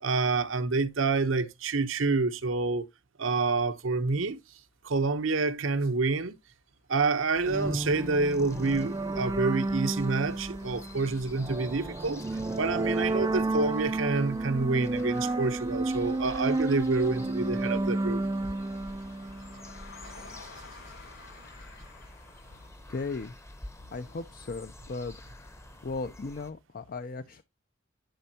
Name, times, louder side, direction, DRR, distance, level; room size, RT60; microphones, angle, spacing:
voice 1, 0.0-2.9 3.2-4.4 4.8-6.3 6.9-12.3 12.5-18.2, right 3 dB, 75° right, 0.8 m, -28 dB
sound 1, 3.8-4.2 4.9-5.0 5.3-22.7, left 3 dB, 80° left, 6.4 m, -55 dB
sound 2, 7.3-26.5, left 1 dB, 15° left, 0.8 m, -48 dB
sound 3, 7.5-20.0, right 2 dB, 20° right, 0.4 m, -31 dB
voice 2, 22.9-23.4 23.9-25.2 25.8-27.4, left 3 dB, 45° left, 0.5 m, -36 dB
10.5 x 5.4 x 2.8 m
head